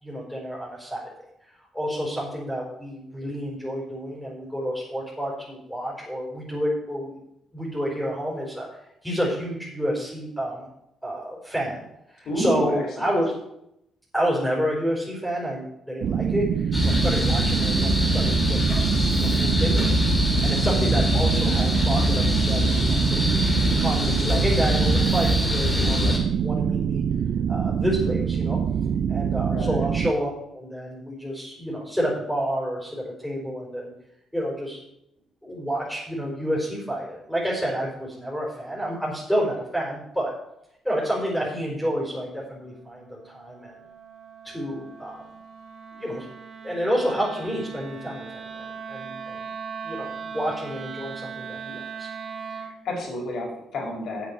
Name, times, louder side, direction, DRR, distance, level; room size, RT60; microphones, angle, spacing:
voice 1, 0.0-1.0 1.5-7.1 7.5-10.7 11.0-13.3 14.1-18.8 19.0-19.9 20.2-27.0 27.5-28.6 29.1-33.9 34.3-34.8 35.4-40.3 40.8-43.7 44.4-45.3 45.9-46.3 46.6-49.4 49.8-52.1, equal, 5° left, -4 dB, 4.8 m, -29 dB
voice 2, 12.2-13.1 29.4-29.8 52.5-54.3, left 1 dB, 65° left, -1 dB, 4.8 m, -31 dB
sound 1, 16.0-30.1, right 8 dB, 65° right, 0.5 m, -25 dB
sound 2, 16.7-26.2, left 1 dB, 20° left, 4.3 m, -23 dB
Wind instrument woodwind instrument, 41.3-52.8, right 6 dB, 50° right, 1.7 m, -40 dB
8.6 x 7.8 x 7.2 m, 0.79 s
cardioid pair, 90°, 0 cm